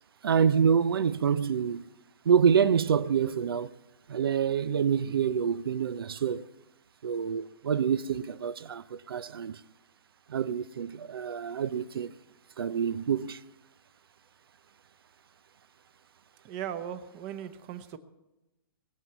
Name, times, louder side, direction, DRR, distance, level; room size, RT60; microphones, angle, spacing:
voice 1, 0.2-1.8 2.2-3.8 4.1-6.5 7.0-9.6 10.3-12.1 12.6-13.4, right 7 dB, 80° right, 0.6 m, -27 dB
voice 2, 16.4-18.0, right 9 dB, 30° right, 1.0 m, -38 dB
20.5 x 7.5 x 7.0 m
hypercardioid pair, 155°, 12 cm